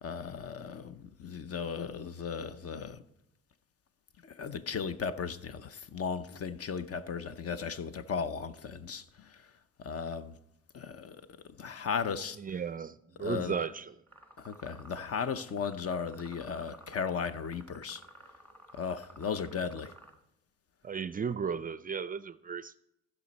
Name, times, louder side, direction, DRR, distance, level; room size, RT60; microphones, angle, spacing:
voice 1, 0.0-3.0 4.2-9.4 9.8-10.3 10.7-11.2 11.6-12.4 13.2-13.6 14.4-18.0 18.7-19.9, left 6 dB, 50° left, 0.7 m, -36 dB
voice 2, 12.4-14.0 20.8-22.8, right 6 dB, 30° right, 0.4 m, -35 dB
sound 1, 14.1-20.1, right 1 dB, 5° left, 1.5 m, -54 dB
15.0 x 6.0 x 4.1 m
cardioid pair, 90°, 30 cm